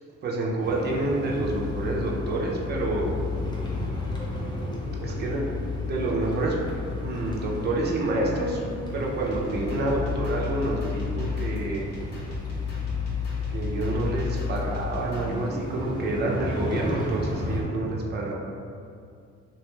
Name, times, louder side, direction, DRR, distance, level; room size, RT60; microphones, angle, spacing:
voice 1, 0.2-3.2 5.0-5.4 5.8-6.6 7.0-8.6 8.9-11.9 13.5-18.3, right 2 dB, 35° right, -3 dB, 0.5 m, -28 dB
sound 1, 0.6-17.6, equal, 15° left, 0.5 m, -35 dB
sound 2, 1.4-15.0, left 7 dB, 5° right, 1.0 m, -33 dB
sound 3, 9.2-15.3, right 1 dB, 60° left, 1.0 m, -39 dB
2.9 x 2.6 x 2.3 m, 2.3 s
cardioid pair, 90°, 30 cm